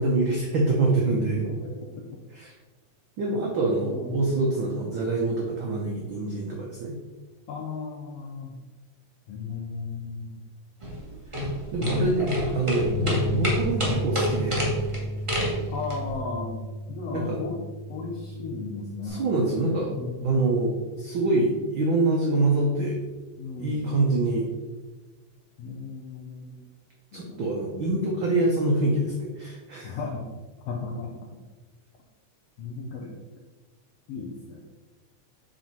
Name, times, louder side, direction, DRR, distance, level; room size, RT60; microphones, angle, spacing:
voice 1, 0.0-1.4 2.3-2.5 3.2-7.0 11.7-14.6 17.1-17.4 19.0-19.9 20.2-23.0 23.6-24.5 27.1-30.0, right 2 dB, 85° right, -1 dB, 1.0 m, -25 dB
voice 2, 1.1-2.1 3.3-3.4 3.8-4.3 7.5-8.6 9.3-10.4 11.8-12.0 13.1-13.3 15.7-16.6 16.9-17.6 17.9-20.4 23.4-23.8 25.6-26.7 27.1-27.9 29.8-30.2 30.6-31.2 32.6-33.2 34.1-34.6, left 4 dB, 70° left, 0 dB, 1.6 m, -35 dB
sound 1, 10.8-16.1, equal, 30° right, 0.5 m, -28 dB
sound 2, 12.8-19.1, left 1 dB, 35° left, 2.0 m, -33 dB
7.1 x 3.8 x 4.5 m, 1.3 s
omnidirectional pair, 3.4 m